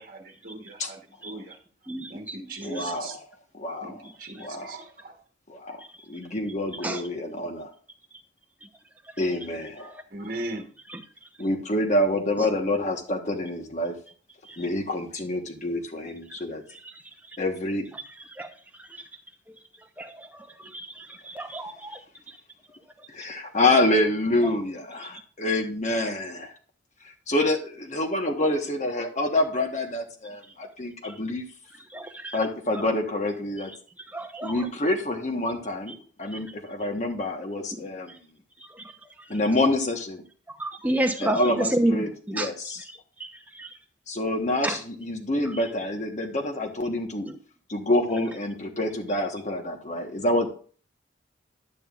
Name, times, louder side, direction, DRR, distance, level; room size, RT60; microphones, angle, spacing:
voice 1, 0.0-1.6 2.1-3.2 3.8-5.2 10.1-10.6, right 2 dB, 45° right, 2 dB, 1.3 m, -38 dB
voice 2, 1.9-2.4 2.8-2.9 6.8-7.0 18.4-18.5 18.8-18.9 19.5-19.6 20.0-22.0 30.6-30.7 31.9-32.4 34.1-34.6 39.0-39.1 40.6-42.5 43.5-43.7 44.6-44.8 47.2-47.3, right 1 dB, 10° right, 5 dB, 0.8 m, -29 dB
voice 3, 2.6-3.2 3.5-4.0 4.4-4.8 5.5-5.8 6.1-7.7 9.2-9.9 11.4-14.0 14.6-16.6 17.4-17.9 23.1-26.5 27.0-31.4 32.3-33.7 34.4-35.9 36.2-38.2 39.3-40.2 41.2-42.8 44.1-47.3 47.7-50.5, left 1 dB, 40° left, 4 dB, 1.2 m, -27 dB
11.0 x 8.8 x 2.5 m, 0.43 s
head